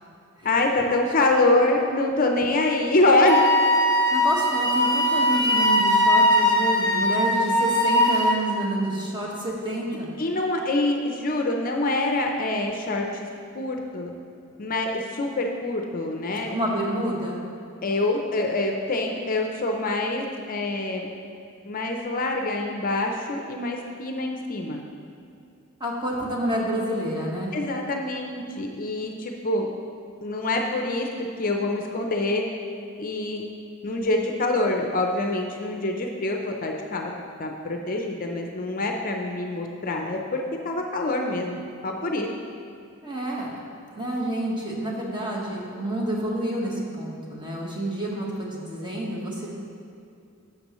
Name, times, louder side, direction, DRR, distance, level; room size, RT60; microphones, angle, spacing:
voice 1, 0.4-3.4 10.2-13.3 13.5-14.1 14.6-16.6 17.8-21.1 21.6-24.8 27.5-29.7 30.2-32.4 33.0-33.4 33.8-37.1 37.4-42.3, left 2 dB, 40° left, 2 dB, 0.6 m, -25 dB
Wind instrument woodwind instrument, 3.3-8.4, left 1 dB, 20° left, 1.0 m, -20 dB
voice 2, 4.1-10.1 16.5-17.4 25.8-27.5 43.0-43.6 43.9-49.5, right 1 dB, 20° right, -3 dB, 1.3 m, -28 dB
11.0 x 7.1 x 3.0 m, 2.5 s
head